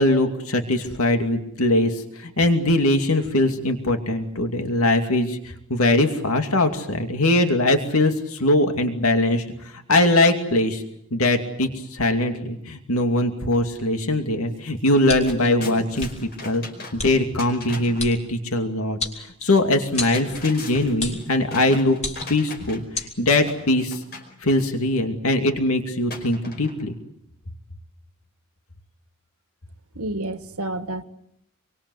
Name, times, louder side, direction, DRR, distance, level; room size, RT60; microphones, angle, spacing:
voice 1, 0.0-10.8 11.1-16.1 16.4-16.6 16.9-22.0 22.3-24.0 24.4-27.0, left 1 dB, 70° left, 2.6 m, -21 dB
sound 1, 14.6-14.7 15.0-18.1 19.8-23.0 23.3-24.3 26.1-27.0, left 2 dB, 50° left, 5.1 m, -38 dB
sound 2, 15.1-15.5 16.0-16.1 17.0-17.1 18.0-18.2 19.0-19.6 20.0-20.2 21.0-21.3 22.0-22.4 22.9-23.1, left 3 dB, 30° left, 4.1 m, -30 dB
voice 2, 29.9-31.0, right 1 dB, 80° right, 1.6 m, -29 dB
26.5 x 24.5 x 8.0 m
head